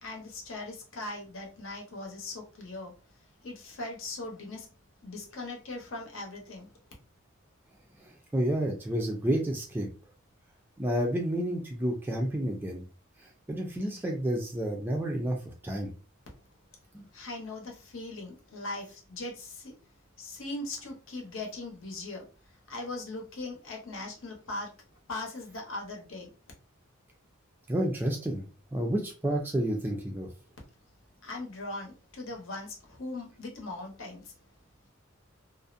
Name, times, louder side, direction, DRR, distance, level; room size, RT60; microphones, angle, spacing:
voice 1, 0.0-2.9 3.4-4.7 5.0-6.7 17.1-19.7 20.2-22.2 22.7-24.7 25.1-26.3 31.2-34.3, left 2 dB, 70° left, 0.8 m, -39 dB
voice 2, 8.0-9.9 10.8-12.9 13.2-15.9 16.9-17.1 27.7-28.4 28.7-30.3, right 1 dB, 10° right, 0.3 m, -30 dB
2.4 x 2.0 x 2.5 m
head